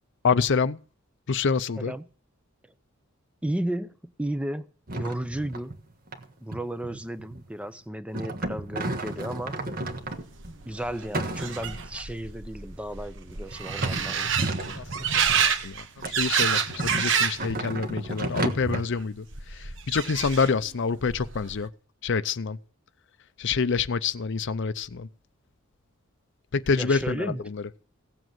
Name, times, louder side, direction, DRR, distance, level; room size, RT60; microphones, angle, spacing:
voice 1, 0.2-0.8 1.3-1.9 14.6-21.7 22.0-22.6 23.4-25.1 26.5-27.6, left 5 dB, 60° left, 0.6 m, -27 dB
voice 2, 3.4-4.7 4.9-5.7 6.4-9.6 10.6-14.3 26.8-27.4, right 1 dB, 5° right, 0.7 m, -33 dB
sound 1, 4.9-5.8 6.1-6.3 6.5-7.6 8.1-10.6 11.1-12.0 12.6-12.7 13.5-15.5 16.0-18.8, right 2 dB, 45° right, 1.5 m, -33 dB
sound 2, 9.9-10.0 10.2-17.5 17.8-18.4 19.3-20.7 21.0-21.6, right 7 dB, 65° right, 1.2 m, -28 dB
17.0 x 7.8 x 7.6 m
head